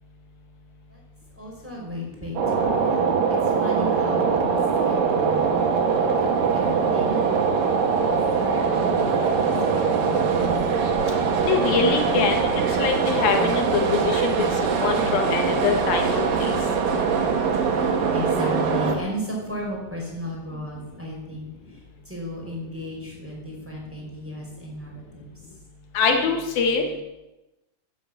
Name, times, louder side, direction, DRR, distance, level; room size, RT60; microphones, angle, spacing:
voice 1, 1.4-3.0 3.3-4.5 4.8-5.4 6.2-7.2 8.0-10.4 17.8-21.5 22.0-25.3, equal, 5° right, -2 dB, 4.5 m, -35 dB
sound 1, 2.4-19.0, right 5 dB, 75° right, 3.4 m, -22 dB
voice 2, 11.5-16.6 26.0-26.8, left 5 dB, 90° left, 3 dB, 3.7 m, -24 dB
14.5 x 9.5 x 7.6 m, 1.0 s
omnidirectional pair, 4.1 m